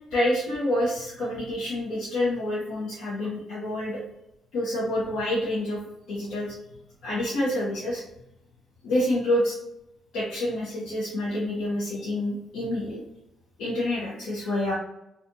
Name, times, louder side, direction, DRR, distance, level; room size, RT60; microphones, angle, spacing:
voice 1, 0.1-4.0 4.5-5.8 6.1-6.6 7.0-8.0 8.8-9.6 10.1-13.0 13.6-14.7, left 1 dB, 85° left, -8 dB, 0.9 m, -27 dB
2.5 x 2.3 x 2.7 m, 0.88 s
cardioid pair, 90°, 0 cm